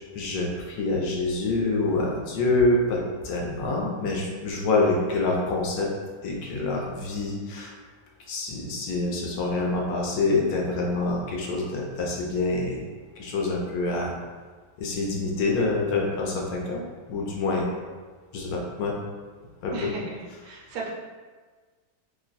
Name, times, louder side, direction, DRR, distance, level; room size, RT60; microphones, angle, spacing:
voice 1, 0.1-5.9 6.2-7.7 8.3-12.8 13.2-14.1 14.8-16.8 17.1-17.7 18.3-18.9 19.6-19.9, left 2 dB, 70° left, -1 dB, 1.0 m, -26 dB
voice 2, 19.7-20.2 20.4-20.9, right 3 dB, 70° right, -2 dB, 1.1 m, -35 dB
3.0 x 2.2 x 3.8 m, 1.4 s
omnidirectional pair, 1.9 m